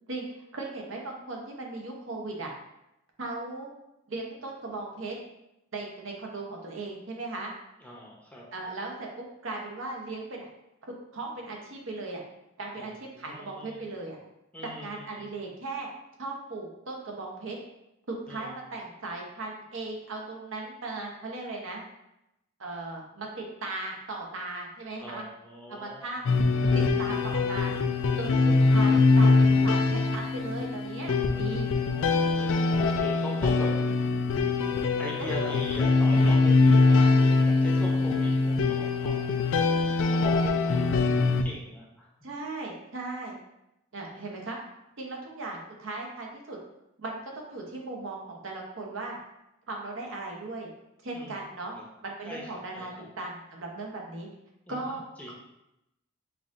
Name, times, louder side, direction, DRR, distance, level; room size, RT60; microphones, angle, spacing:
voice 1, 0.5-2.5 3.2-3.7 4.1-5.2 5.7-7.5 8.5-10.5 10.9-12.2 12.6-14.2 14.8-15.9 16.2-17.6 18.1-21.8 22.6-25.2 25.7-26.2 26.7-27.7 28.2-31.7 35.2-35.6 39.5-39.9 42.2-43.4 43.9-44.6 45.0-46.6 47.0-49.2 49.7-50.7 51.0-51.7 52.0-52.9 53.2-54.3 54.7-55.0 55.3-55.4, right 2 dB, 65° right, 0 dB, 0.8 m, -37 dB
voice 2, 7.8-8.4 12.8-13.8 14.5-15.3 18.3-18.6 25.0-26.0 31.0-33.7 35.0-39.2 40.1-42.1 44.1-44.2 51.1-51.4 51.7-51.8 52.3-52.4 52.7-53.0 54.7-54.8 55.2-55.3, equal, 5° left, -4 dB, 0.7 m, -41 dB
sound 1, 26.3-41.4, left 3 dB, 65° left, 0.3 m, -23 dB
5.4 x 2.6 x 2.5 m, 0.86 s
head